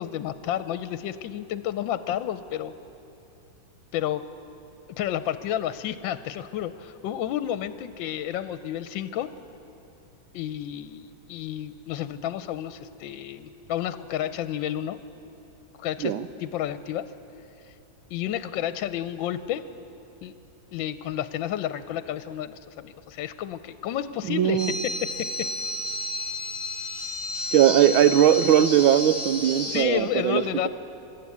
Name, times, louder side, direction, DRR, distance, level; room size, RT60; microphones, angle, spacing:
voice 1, 0.0-2.7 3.9-4.2 5.0-9.3 10.3-15.0 15.8-16.1 16.4-17.1 18.1-19.6 20.2-20.3 20.7-25.5 29.6-30.7, left 11 dB, 75° left, 12 dB, 1.3 m, -31 dB
voice 2, 24.3-24.7 27.5-30.7, right 10 dB, 85° right, 12 dB, 1.5 m, -20 dB
sound 1, 24.6-29.8, left 2 dB, 10° left, 1.4 m, -32 dB
26.0 x 12.5 x 8.4 m, 2.8 s
omnidirectional pair, 2.2 m